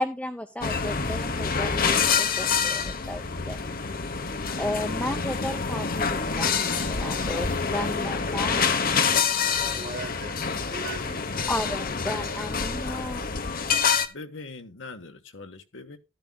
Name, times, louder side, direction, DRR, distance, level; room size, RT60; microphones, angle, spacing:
voice 1, 0.0-3.6 4.6-8.7 11.5-13.2, left 1 dB, 5° left, 0.7 m, -33 dB
sound 1, 0.6-14.1, left 5 dB, 45° left, 1.0 m, -27 dB
voice 2, 9.4-11.4, right 3 dB, 40° right, 1.8 m, -40 dB
voice 3, 13.8-16.0, left 3 dB, 65° left, 1.4 m, -42 dB
13.5 x 11.5 x 2.3 m
head